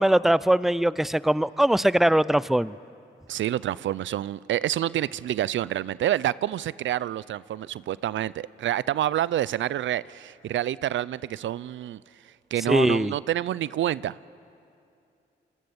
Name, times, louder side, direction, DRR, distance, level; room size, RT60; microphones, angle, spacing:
voice 1, 0.0-2.7 12.7-13.1, right 1 dB, ahead, 18 dB, 0.7 m, -21 dB
voice 2, 3.3-14.2, right 12 dB, 75° right, 20 dB, 0.5 m, -28 dB
29.5 x 24.0 x 7.1 m, 2.6 s
supercardioid pair, 45°, 20 cm